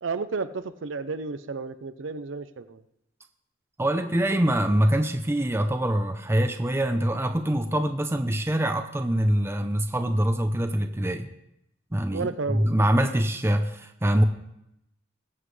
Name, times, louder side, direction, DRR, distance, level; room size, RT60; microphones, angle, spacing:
voice 1, 0.0-2.8 12.1-12.7, right 4 dB, 75° right, 12 dB, 0.6 m, -32 dB
voice 2, 3.8-11.3 11.9-14.2, right 1 dB, 15° right, 6 dB, 0.6 m, -24 dB
21.0 x 7.3 x 3.3 m, 0.82 s
head